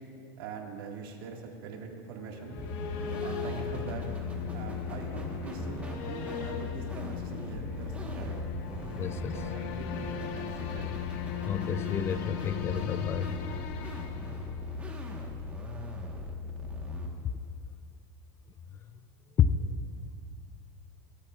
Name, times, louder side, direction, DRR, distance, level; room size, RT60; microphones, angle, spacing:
voice 1, 0.4-2.6 3.2-4.1 4.5-8.4 9.3-11.0, right 4 dB, 80° right, 1 dB, 1.9 m, -43 dB
sound 1, 2.2-15.0, left 8 dB, 55° left, 0.9 m, -39 dB
sound 2, 2.6-17.1, left 3 dB, 10° right, 1.3 m, -38 dB
voice 2, 8.7-9.4 11.4-13.3 19.4-19.6, left 8 dB, 20° left, 11 dB, 0.4 m, -29 dB
23.0 x 13.0 x 2.4 m, 2.4 s
supercardioid pair, 160°, 12 cm